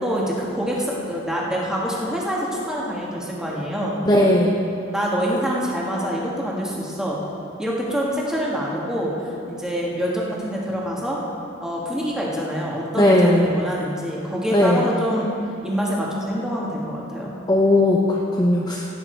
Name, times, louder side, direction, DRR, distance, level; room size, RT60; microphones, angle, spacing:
voice 1, 0.0-4.0 4.9-7.2 7.6-11.2 11.6-15.3 15.6-17.3, equal, 5° right, -4 dB, 1.9 m, -26 dB
voice 2, 4.0-4.5 13.0-13.5 14.5-14.8 17.5-18.9, left 1 dB, 20° left, -3 dB, 0.8 m, -17 dB
16.5 x 8.7 x 4.6 m, 2.7 s
head